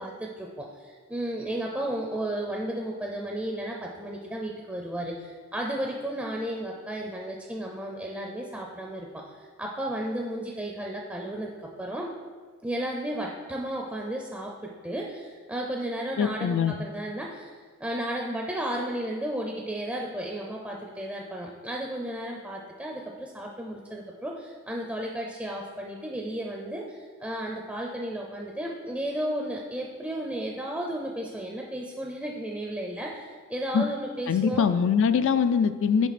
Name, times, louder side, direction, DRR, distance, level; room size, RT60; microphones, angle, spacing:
voice 1, 0.0-12.1 12.6-34.6, right 1 dB, 5° right, 0 dB, 0.5 m, -33 dB
voice 2, 16.2-16.7 33.7-33.8 34.3-36.1, left 6 dB, 60° left, 11 dB, 0.3 m, -23 dB
7.1 x 4.9 x 4.2 m, 1.6 s
head